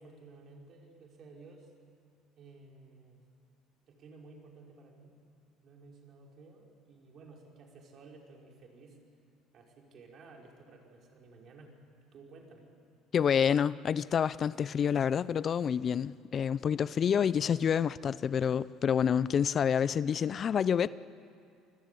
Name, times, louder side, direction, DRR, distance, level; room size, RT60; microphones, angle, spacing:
voice 1, 0.0-1.7 2.4-3.2 3.9-5.2 5.6-9.0 9.5-11.8 12.1-12.7, right 3 dB, 55° right, 0 dB, 5.5 m, -54 dB
voice 2, 13.1-20.9, left 7 dB, 45° left, 18 dB, 0.6 m, -28 dB
28.0 x 21.5 x 8.5 m, 2.4 s
supercardioid pair, 80°, 0 cm